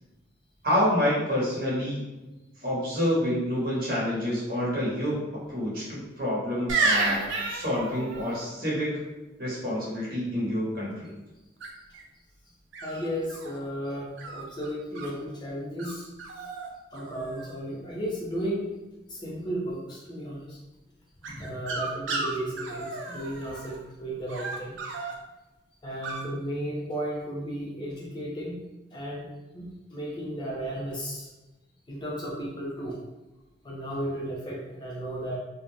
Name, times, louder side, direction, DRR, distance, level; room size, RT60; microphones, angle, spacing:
voice 1, 0.6-2.0 2.6-5.2 5.5-8.9 9.4-11.1, equal, 45° right, -6 dB, 1.0 m, -28 dB
sound 1, 6.7-8.5 11.6-12.0 12.7-13.6 14.2-15.1 15.8-15.9 16.2-16.7 16.9-17.6 21.2-23.8 24.3-25.1 26.0-26.2, right 3 dB, 70° right, 0.4 m, -31 dB
voice 2, 12.8-16.1 16.9-18.8 19.1-20.6 21.4-24.8 25.8-28.6 28.9-31.3 31.9-33.0 33.6-35.4, equal, 20° left, -4 dB, 0.4 m, -34 dB
2.5 x 2.1 x 3.2 m, 1.1 s
head